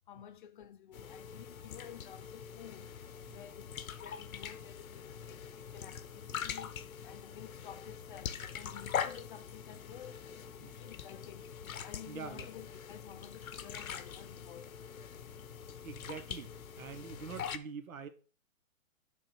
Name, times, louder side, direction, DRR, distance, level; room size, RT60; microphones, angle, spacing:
voice 1, 0.1-2.9 3.3-11.5 11.8-14.9, left 10 dB, 40° left, 0.7 m, -52 dB
sound 1, 0.9-17.6, left 8 dB, 90° left, 0.9 m, -43 dB
voice 2, 12.1-12.5 15.8-18.1, right 6 dB, 80° right, 1.3 m, -45 dB
6.7 x 3.9 x 6.4 m
hypercardioid pair, 155°, 41 cm